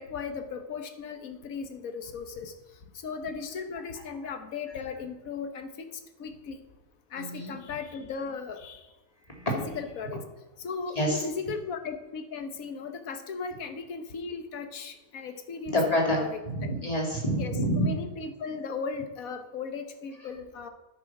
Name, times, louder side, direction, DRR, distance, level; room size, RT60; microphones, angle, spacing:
voice 1, 0.0-2.5 3.0-5.9 6.2-6.6 7.1-8.8 9.5-10.2 10.6-15.8 16.1-16.3 17.4-20.7, left 5 dB, 85° left, 8 dB, 1.5 m, -37 dB
voice 2, 7.1-7.5 9.3-9.8 11.0-11.2 15.7-16.2 16.4-17.9, equal, 25° left, 0 dB, 2.7 m, -27 dB
10.0 x 8.6 x 5.9 m, 1.1 s
omnidirectional pair, 1.4 m